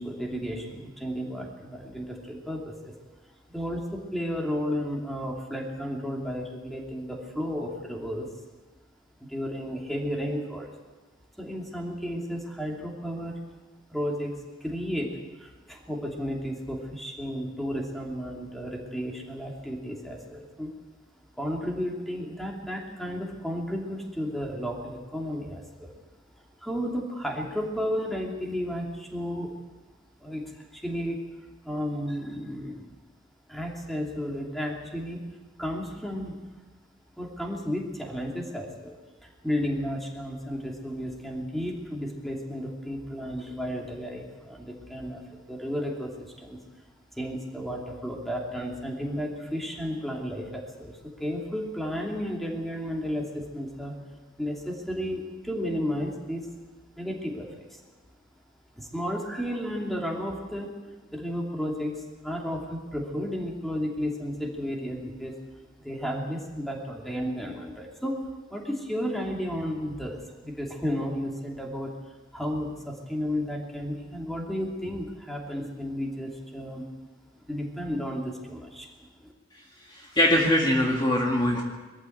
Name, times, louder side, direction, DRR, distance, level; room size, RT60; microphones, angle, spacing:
voice 1, 0.0-2.9 3.5-8.3 9.2-10.7 11.4-13.3 13.9-14.3 14.6-15.1 15.4-20.7 21.4-25.9 26.6-29.5 30.2-30.4 30.7-31.2 31.6-32.8 33.5-35.2 35.6-36.4 37.2-38.9 39.2-46.6 47.1-53.9 54.4-56.5 57.0-57.8 58.8-60.7 61.1-65.3 65.8-68.2 68.5-71.9 72.3-76.8 77.5-78.9 79.2-79.3, equal, ahead, -1 dB, 2.9 m, -33 dB
voice 2, 79.9-81.6, left 1 dB, 25° left, -1 dB, 2.2 m, -22 dB
22.5 x 14.0 x 8.1 m, 1.3 s
head